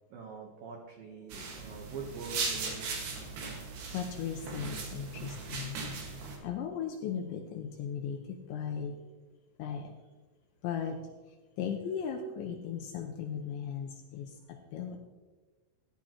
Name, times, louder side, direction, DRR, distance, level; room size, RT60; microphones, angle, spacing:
voice 1, 0.1-2.9, right 4 dB, 90° right, 0 dB, 2.0 m, -44 dB
sound 1, 1.3-6.4, right 4 dB, 60° right, 3.2 m, -38 dB
voice 2, 3.9-5.8 6.2-9.0 9.6-9.9 10.6-11.0 11.3-15.0, left 7 dB, 85° left, 3 dB, 2.7 m, -37 dB
16.5 x 10.5 x 3.0 m, 1.3 s
omnidirectional pair, 5.9 m